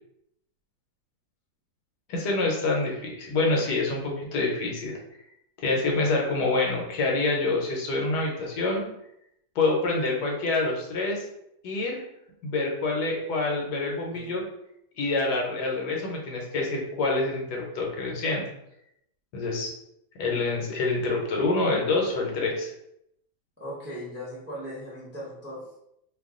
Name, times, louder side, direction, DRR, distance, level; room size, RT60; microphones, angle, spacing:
voice 1, 2.1-4.9 5.6-8.8 9.6-11.2 11.6-12.0 12.4-14.4 15.0-18.4 19.3-19.7 20.2-22.7, left 3 dB, 75° left, -1 dB, 1.3 m, -26 dB
voice 2, 23.6-25.8, equal, 10° right, -7 dB, 0.6 m, -38 dB
2.9 x 2.3 x 3.6 m, 0.78 s
omnidirectional pair, 1.8 m